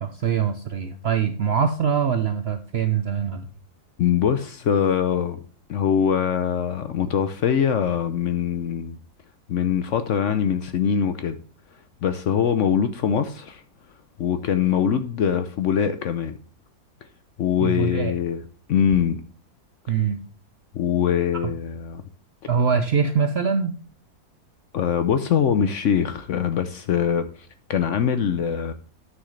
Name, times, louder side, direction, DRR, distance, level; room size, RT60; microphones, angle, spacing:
voice 1, 0.0-3.5 17.6-18.1 19.9-20.2 21.4-21.5 22.5-23.7, right 6 dB, 60° right, 0.6 m, -23 dB
voice 2, 4.0-5.4 5.7-9.0 9.5-11.4 12.0-13.6 14.2-16.3 17.4-18.4 18.7-19.2 20.7-22.0 24.7-27.3 27.7-28.7, left 8 dB, 65° left, 0.8 m, -23 dB
9.4 x 6.3 x 3.2 m
omnidirectional pair, 1.7 m